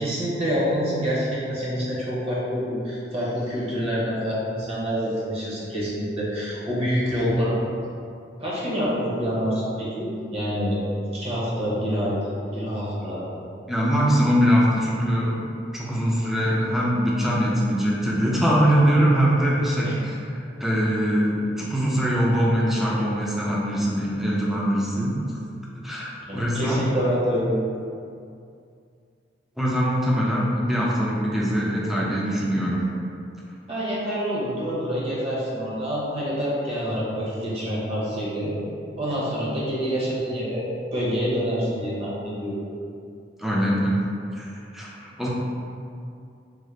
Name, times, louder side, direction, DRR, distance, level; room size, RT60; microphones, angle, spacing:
voice 1, 0.0-7.6 8.4-10.8 11.1-12.2 12.5-13.2 19.8-20.0 26.3-27.6 33.7-38.5 39.0-42.6, equal, 35° right, -7 dB, 0.8 m, -26 dB
voice 2, 13.7-15.4 15.7-20.2 20.6-25.2 25.8-26.8 29.6-32.8 43.4-44.0 44.3-45.3, equal, ahead, -5 dB, 0.4 m, -22 dB
3.7 x 2.0 x 3.1 m, 2.4 s
head